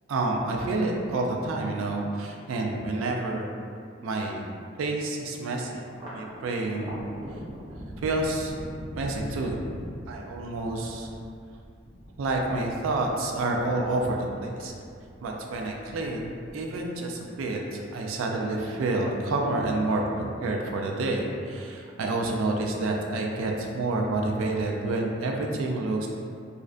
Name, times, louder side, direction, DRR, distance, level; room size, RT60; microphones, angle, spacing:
voice 1, 0.1-3.5 4.0-4.4 4.8-7.0 8.0-8.5 9.0-9.6 10.1-11.1 12.2-14.7 15.2-26.1, right 2 dB, 90° right, 0 dB, 0.3 m, -29 dB
Thunder, 5.9-18.5 18.9-19.7 20.1-20.9, equal, 20° right, 0.5 m, -43 dB
2.5 x 2.1 x 2.4 m, 2.3 s
head